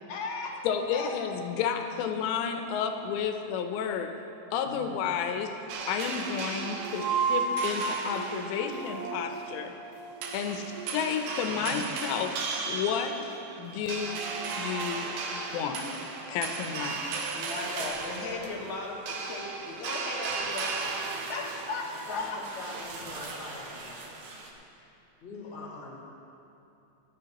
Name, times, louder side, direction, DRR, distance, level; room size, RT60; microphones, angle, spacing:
voice 1, 0.1-0.6 0.9-1.1 4.7-4.8 17.3-20.8 21.3-22.4, left 3 dB, 60° left, -2 dB, 2.2 m, -36 dB
voice 2, 0.6-4.1 4.5-5.6 5.9-9.7 10.3-14.2 14.5-15.1 15.5-16.0 16.3-17.0, left 7 dB, 85° left, 6 dB, 3.0 m, -31 dB
sound 1, 5.7-23.5, right 4 dB, 90° right, 3.3 m, -34 dB
sound 2, 16.9-18.6 19.3-19.7 20.3-24.5, right 3 dB, 65° right, 1.8 m, -43 dB
voice 3, 22.1-24.0 24.8-24.9 25.2-26.0, left 2 dB, 25° left, -7 dB, 1.8 m, -43 dB
26.5 x 8.8 x 3.0 m, 2.8 s
omnidirectional pair, 5.0 m